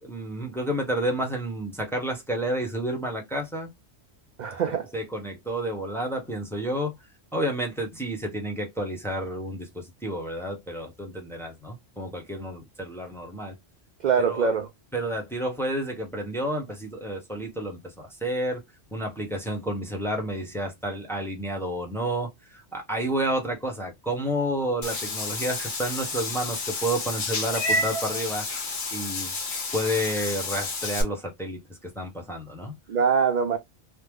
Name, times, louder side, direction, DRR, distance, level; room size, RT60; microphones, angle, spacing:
voice 1, 0.0-3.7 4.7-7.0 7.3-13.5 14.2-14.5 14.9-18.6 18.9-28.5 28.9-29.4 29.7-31.6 31.9-32.8, right 1 dB, 5° left, 0.7 m, -30 dB
voice 2, 4.4-4.9 14.0-14.7 32.9-33.6, right 6 dB, 55° right, 0.5 m, -23 dB
Meow / Water / Bathtub (filling or washing), 24.8-31.0, left 2 dB, 70° left, 1.2 m, -30 dB
3.1 x 2.1 x 3.5 m
omnidirectional pair, 1.1 m